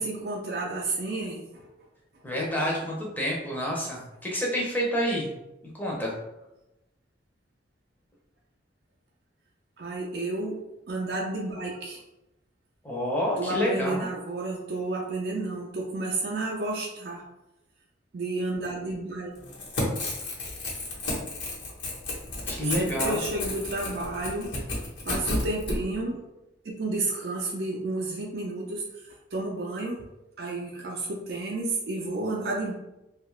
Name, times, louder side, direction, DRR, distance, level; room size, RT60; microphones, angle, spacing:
voice 1, 0.0-1.7 9.8-10.6 10.9-12.0 13.4-17.2 18.1-19.3 22.8-24.5 25.1-26.2 26.6-30.0 30.4-32.7, right 2 dB, 55° right, -2 dB, 0.4 m, -31 dB
voice 2, 2.2-5.3 5.7-6.1 12.8-14.1 22.5-23.2, equal, 10° left, -3 dB, 0.6 m, -28 dB
Crackle / Tearing, 19.4-25.8, left 2 dB, 70° left, 1.0 m, -32 dB
2.8 x 2.3 x 3.1 m, 0.94 s
head